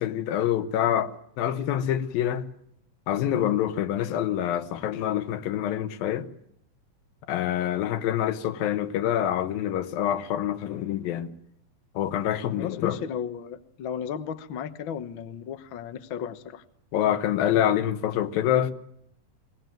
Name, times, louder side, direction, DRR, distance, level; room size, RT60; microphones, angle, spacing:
voice 1, 0.0-2.5 3.1-6.3 7.3-11.3 12.0-13.0 16.9-18.7, left 11 dB, 85° left, 3.0 m, -26 dB
voice 2, 12.6-16.6, left 8 dB, 70° left, 1.2 m, -34 dB
22.5 x 19.0 x 9.2 m
omnidirectional pair, 4.0 m